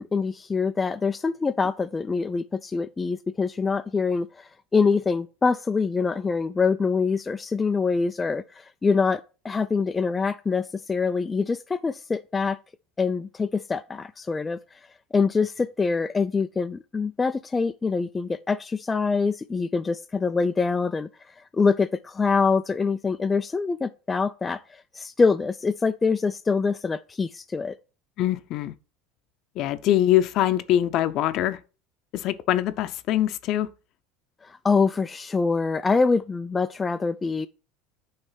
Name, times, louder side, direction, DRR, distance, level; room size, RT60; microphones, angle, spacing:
voice 1, 0.0-12.6 13.0-14.6 15.1-27.8 34.4-37.5, left 4 dB, 15° left, 0.3 m, -25 dB
voice 2, 28.2-28.7 29.6-31.6 32.1-33.7, left 12 dB, 50° left, 0.7 m, -23 dB
9.0 x 3.2 x 5.7 m
supercardioid pair, 120°, 0 cm